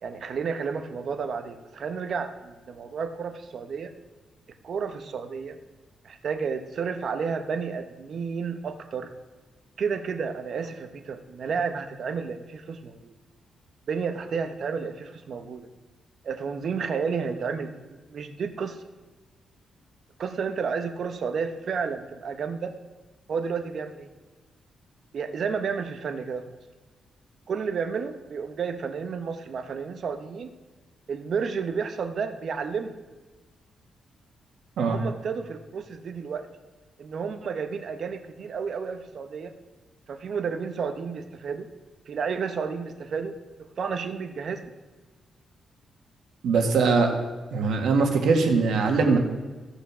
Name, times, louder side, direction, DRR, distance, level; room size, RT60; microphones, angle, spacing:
voice 1, 0.0-3.9 4.6-5.6 6.0-9.1 9.8-13.1 13.9-15.7 16.2-18.8 20.2-22.7 23.3-24.1 25.1-26.4 27.5-30.5 31.1-33.0 34.8-36.5 37.0-39.5 40.1-41.7 42.1-44.7, right 5 dB, 50° right, 8 dB, 1.0 m, -31 dB
voice 2, 46.4-47.1 47.5-49.2, right 4 dB, 75° right, 3 dB, 1.8 m, -21 dB
14.5 x 6.6 x 6.2 m, 1.3 s
wide cardioid pair, 160°, 0 cm